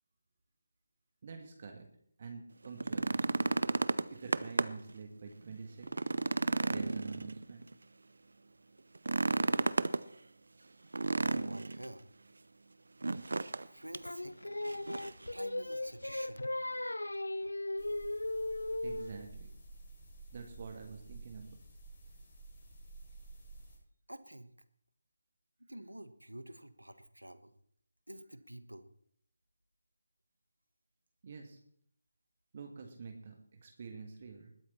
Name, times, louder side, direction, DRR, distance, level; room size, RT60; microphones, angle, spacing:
voice 1, 1.2-1.9 2.2-3.3 4.1-6.1 6.7-7.7 18.8-19.5 20.3-21.6 31.2-31.6 32.5-34.5, right 5 dB, 35° right, 3 dB, 1.7 m, -47 dB
sound 1, 2.6-4.9 5.3-5.4 5.8-7.7 8.9-10.0 10.9-11.8 13.0-13.7 13.9-14.1 14.6-15.2 16.4-16.5, right 3 dB, 60° right, 0.6 m, -32 dB
voice 2, 11.2-12.1 13.6-14.4 15.3-16.4 24.1-24.5 25.6-27.5 28.1-28.8, right 1 dB, 85° right, 13 dB, 1.3 m, -49 dB
Singing, 14.0-19.2, left 1 dB, 75° left, 0.6 m, -37 dB
sound 2, 17.8-23.8, right 3 dB, 30° left, 6.9 m, -52 dB
20.5 x 8.5 x 4.4 m, 0.64 s
figure-of-eight pair, 155°, 0 cm